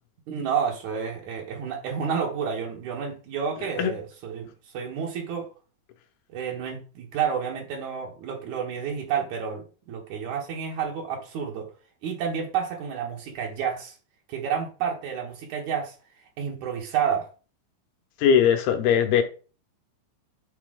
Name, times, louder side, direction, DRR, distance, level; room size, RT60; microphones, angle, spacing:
voice 1, 0.3-4.5 4.7-5.5 6.3-11.7 12.0-14.0 14.3-15.9 16.4-17.3, right 7 dB, 75° right, 1.7 m, -30 dB
voice 2, 18.2-19.2, left 8 dB, 75° left, 2.4 m, -20 dB
11.5 x 4.2 x 3.7 m
omnidirectional pair, 5.3 m